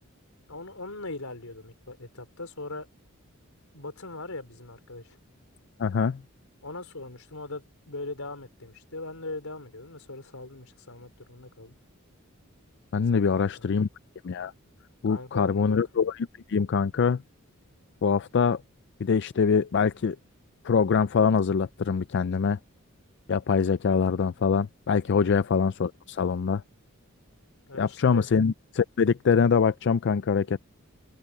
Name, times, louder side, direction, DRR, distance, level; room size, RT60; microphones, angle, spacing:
voice 1, 0.5-2.9 3.7-5.2 6.6-11.8 13.1-13.4 13.7-13.8 15.1-15.8 25.2-25.4 27.7-28.3, left 2 dB, 85° left, 4.1 m, -40 dB
voice 2, 5.8-6.2 12.9-13.9 14.2-14.5 15.0-17.2 18.0-18.6 19.0-20.2 20.6-22.6 23.3-26.6 27.8-30.6, left 6 dB, 55° left, 0.4 m, -24 dB
open air
head